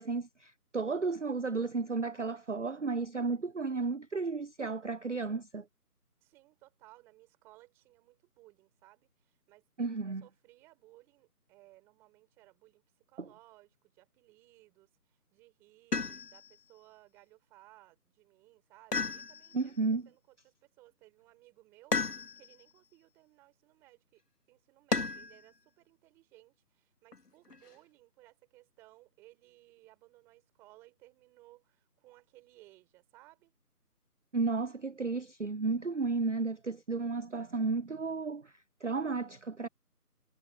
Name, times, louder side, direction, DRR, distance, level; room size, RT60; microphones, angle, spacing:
voice 1, 0.0-5.7 9.8-10.2 13.2-13.3 19.5-20.1 34.3-39.7, right 4 dB, 50° right, 0.5 m, -33 dB
voice 2, 6.2-12.8 13.1-24.2 24.5-33.5, right 18 dB, 5° right, 4.8 m, -61 dB
sound 1, 15.9-16.6 18.9-19.7 21.9-22.6 24.9-25.4 27.1-27.7, left 4 dB, 80° left, 2.4 m, -34 dB
figure-of-eight pair, 170°, 47 cm